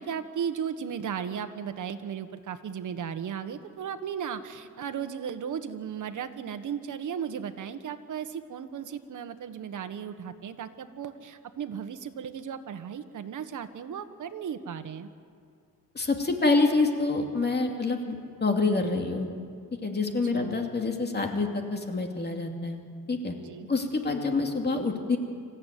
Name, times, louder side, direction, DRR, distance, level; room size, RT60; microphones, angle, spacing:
voice 1, 0.0-15.1 20.3-20.6 23.4-23.7, right 8 dB, 55° right, 8 dB, 1.5 m, -36 dB
voice 2, 15.9-18.2 18.4-19.3 19.8-23.3 23.7-25.2, left 3 dB, 30° left, 3 dB, 2.6 m, -27 dB
26.0 x 15.0 x 9.3 m, 2.3 s
cardioid pair, 130°, 35 cm